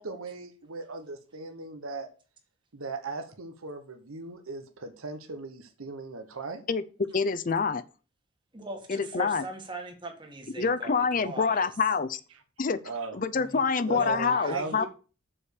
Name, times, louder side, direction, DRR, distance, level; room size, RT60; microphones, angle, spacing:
voice 1, 0.0-2.1 2.7-6.6 12.8-13.2 13.9-14.8, right 4 dB, 90° right, 1.1 m, -38 dB
voice 2, 7.1-7.8 8.9-9.4 10.6-12.2 12.6-12.8 13.1-14.9, left 5 dB, 40° left, 0.5 m, -26 dB
voice 3, 8.5-11.7 13.3-13.6 13.9-14.9, right 2 dB, 20° right, 1.5 m, -40 dB
7.1 x 5.0 x 6.7 m
head